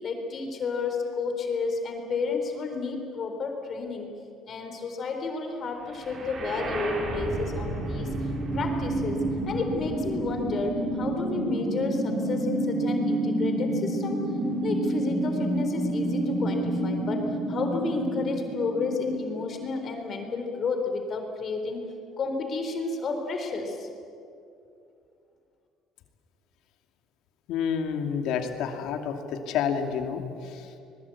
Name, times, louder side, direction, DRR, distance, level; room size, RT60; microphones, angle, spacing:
voice 1, 0.0-4.1 4.5-14.2 14.6-23.9, left 4 dB, 40° left, 4 dB, 3.7 m, -31 dB
sound 1, 6.0-19.9, right 1 dB, 35° right, 4.7 m, -29 dB
voice 2, 27.5-30.8, left 7 dB, 75° left, 5 dB, 2.4 m, -29 dB
25.5 x 21.0 x 8.5 m, 2.6 s
cardioid pair, 130°, 0 cm